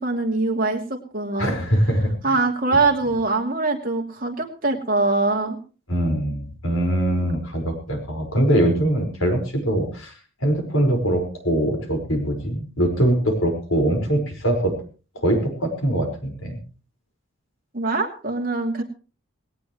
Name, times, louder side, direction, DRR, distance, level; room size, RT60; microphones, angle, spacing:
voice 1, 0.0-1.5 2.2-5.6 17.7-18.8, right 3 dB, 40° right, 1 dB, 2.8 m, -23 dB
voice 2, 1.4-2.1 5.9-10.1 10.4-14.7 15.1-16.6, right 1 dB, 75° left, 4 dB, 5.1 m, -22 dB
18.5 x 18.0 x 3.1 m, 0.35 s
head